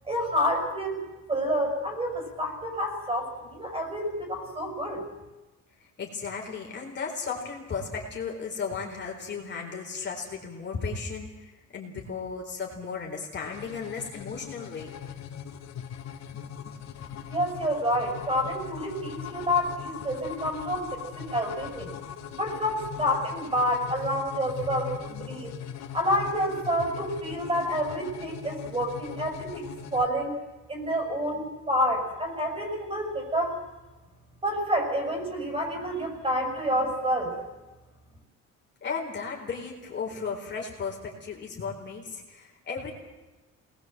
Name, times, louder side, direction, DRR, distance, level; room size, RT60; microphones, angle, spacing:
voice 1, 0.1-1.0 1.3-5.0 17.3-21.9 22.3-25.5 25.9-30.4 30.7-33.6 34.4-37.4, equal, 20° right, 3 dB, 5.9 m, -28 dB
voice 2, 6.0-14.9 38.8-42.9, left 5 dB, 35° left, 0 dB, 4.2 m, -35 dB
sound 1, 13.4-30.1, left 8 dB, 60° left, 1.8 m, -40 dB
26.5 x 20.0 x 7.8 m, 1.2 s
cardioid pair, 155°, 30 cm